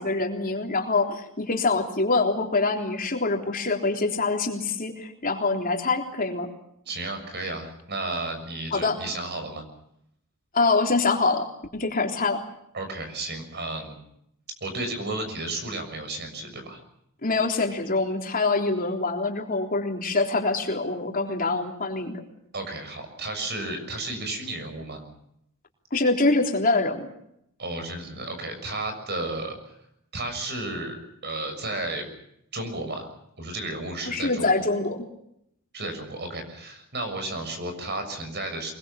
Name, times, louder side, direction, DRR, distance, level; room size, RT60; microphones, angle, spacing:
voice 1, 0.0-6.5 8.7-9.0 10.5-11.4 11.7-12.4 17.2-22.2 25.9-27.1 34.0-35.0, left 3 dB, 40° left, 2 dB, 3.6 m, -25 dB
voice 2, 6.8-9.6 12.7-13.9 14.6-16.8 22.5-25.0 27.6-29.7 30.1-32.1 32.5-33.1 33.4-34.5 35.7-38.7, right 2 dB, 50° right, 7 dB, 6.8 m, -33 dB
24.5 x 23.0 x 7.1 m, 0.76 s
head